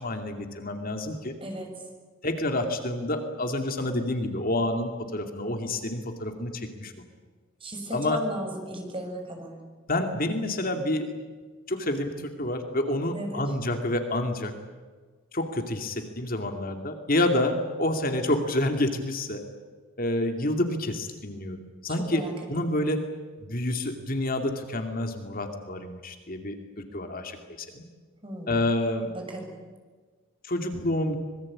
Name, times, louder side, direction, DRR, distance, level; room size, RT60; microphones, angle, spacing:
voice 1, 0.0-1.3 2.2-6.9 7.9-8.2 9.9-11.1 11.7-14.5 15.3-19.4 20.0-22.2 22.5-23.0 23.4-27.8 28.5-29.1 30.4-31.2, left 1 dB, 45° left, 5 dB, 2.5 m, -28 dB
voice 2, 1.4-1.7 7.6-9.6 13.1-13.5 22.0-22.3 28.2-28.6 29.1-29.5, right 1 dB, 25° right, 2 dB, 6.5 m, -36 dB
25.5 x 21.5 x 8.7 m, 1.4 s
head